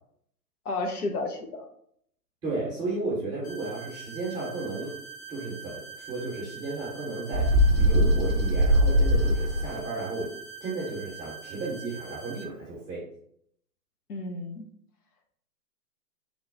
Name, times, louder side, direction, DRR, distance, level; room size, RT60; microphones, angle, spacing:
voice 1, 0.6-1.6 14.1-14.7, left 2 dB, 65° left, 5 dB, 0.8 m, -32 dB
voice 2, 2.4-4.9 5.3-10.3 10.6-13.1, right 3 dB, 10° right, -7 dB, 0.8 m, -33 dB
sound 1, 3.4-12.4, right 6 dB, 40° left, 0.9 m, -44 dB
Bird, 7.3-9.8, equal, 40° right, 0.5 m, -21 dB
3.7 x 2.3 x 3.7 m, 0.67 s
hypercardioid pair, 140°, 49 cm